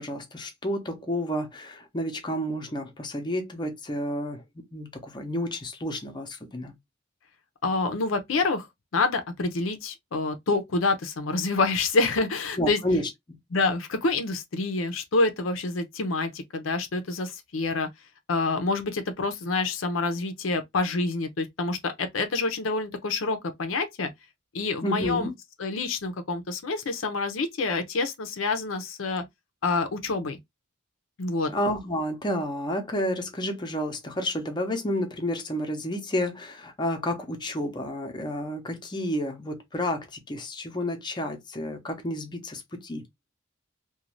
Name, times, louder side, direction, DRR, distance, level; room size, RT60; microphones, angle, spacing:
voice 1, 0.0-4.4 4.7-6.7 12.6-13.4 24.8-25.3 31.5-43.0, left 1 dB, 25° left, 0.6 m, -30 dB
voice 2, 7.6-8.7 8.9-12.8 13.5-17.9 18.3-24.1 24.5-25.3 25.6-29.2 29.6-30.4 31.2-31.5, left 3 dB, 80° left, 0.6 m, -27 dB
2.5 x 2.2 x 3.0 m
head